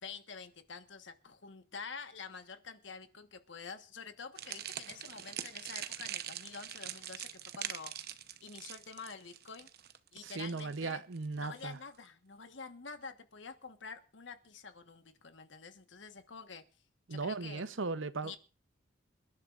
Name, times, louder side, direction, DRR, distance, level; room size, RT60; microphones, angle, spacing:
voice 1, 0.0-7.9 8.4-9.7 10.1-11.0 11.4-16.6 17.1-17.7 18.2-18.4, left 5 dB, 70° left, 1.4 m, -48 dB
sound 1, 4.4-11.6, right 10 dB, 55° right, 0.9 m, -43 dB
voice 2, 10.2-11.8 17.1-18.4, right 3 dB, 85° right, 0.8 m, -37 dB
27.5 x 11.0 x 2.5 m
head